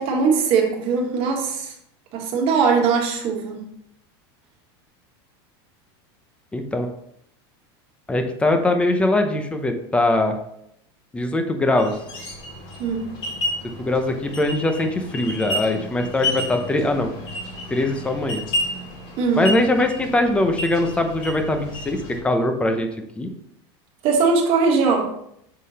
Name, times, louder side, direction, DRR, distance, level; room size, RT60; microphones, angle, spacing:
voice 1, 0.0-1.7 2.1-3.6 12.8-13.1 19.2-19.5 24.0-25.1, right 5 dB, 45° right, 1 dB, 1.5 m, -20 dB
voice 2, 6.5-6.9 8.1-10.4 11.1-12.0 13.8-17.1 17.7-18.4 19.3-22.9 23.2-23.3, left 2 dB, 10° left, 6 dB, 0.6 m, -21 dB
sound 1, 11.8-22.2, left 1 dB, 40° left, 2.1 m, -31 dB
6.6 x 3.7 x 4.1 m, 0.75 s
supercardioid pair, 145°, 13 cm